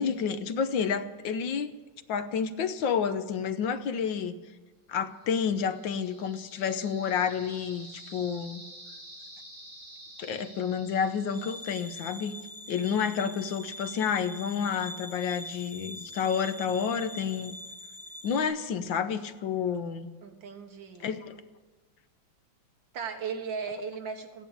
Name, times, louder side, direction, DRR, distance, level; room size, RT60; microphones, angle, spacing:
voice 1, 0.0-1.7 2.1-4.4 4.9-8.6 10.2-12.3 12.7-17.6 18.2-20.1 21.0-21.4, left 7 dB, 75° left, 11 dB, 1.6 m, -30 dB
sound 1, 5.3-12.3, right 1 dB, 30° right, 5.7 m, -49 dB
sound 2, 11.3-18.4, left 1 dB, ahead, 1.7 m, -43 dB
voice 2, 20.2-21.1 22.9-24.5, right 5 dB, 75° right, 5 dB, 2.1 m, -37 dB
15.5 x 10.5 x 8.8 m, 1.3 s
omnidirectional pair, 2.1 m